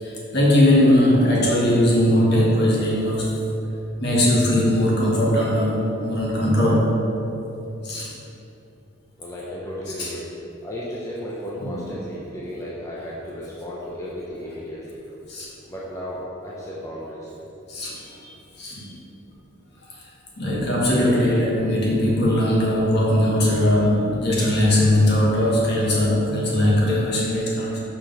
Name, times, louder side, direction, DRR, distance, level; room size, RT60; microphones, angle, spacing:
voice 1, 0.0-3.3 4.0-7.0 7.8-8.1 10.0-10.1 11.6-11.8 15.3-15.5 17.7-18.2 18.6-18.9 20.4-27.8, left 1 dB, 50° left, -4 dB, 1.5 m, -20 dB
voice 2, 9.2-10.3 10.6-15.0 15.7-17.4, equal, 15° left, -6 dB, 0.6 m, -34 dB
5.7 x 4.9 x 5.2 m, 2.8 s
head